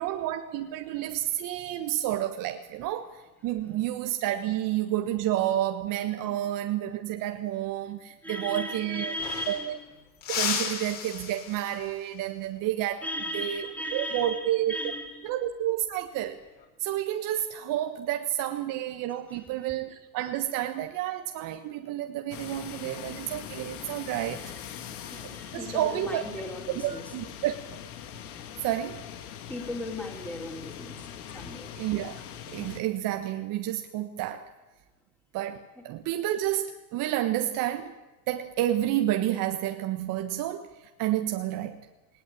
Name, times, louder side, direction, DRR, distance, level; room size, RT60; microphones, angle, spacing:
voice 1, 0.0-9.1 9.5-9.8 10.3-13.0 13.3-13.6 13.9-14.8 15.2-16.4 16.8-24.4 25.2-26.2 26.8-27.8 28.6-29.0 31.8-32.2 32.5-34.5 35.3-38.0 38.3-40.7 41.0-41.9, right 13 dB, 40° right, 6 dB, 1.5 m, -30 dB
voice 2, 8.2-9.8 13.0-15.3 19.3-19.4 24.3-27.2 29.5-31.1 31.3-31.8, left 1 dB, 5° left, 1 dB, 3.5 m, -37 dB
sound 1, 8.6-8.7 8.9-9.8 10.2-12.0 14.5-14.8 16.2-16.6, left 7 dB, 40° left, 6.2 m, -34 dB
sound 2, 22.3-32.8, left 9 dB, 65° left, 2.4 m, -42 dB
20.0 x 18.0 x 8.7 m, 1.1 s
hypercardioid pair, 100°, 48 cm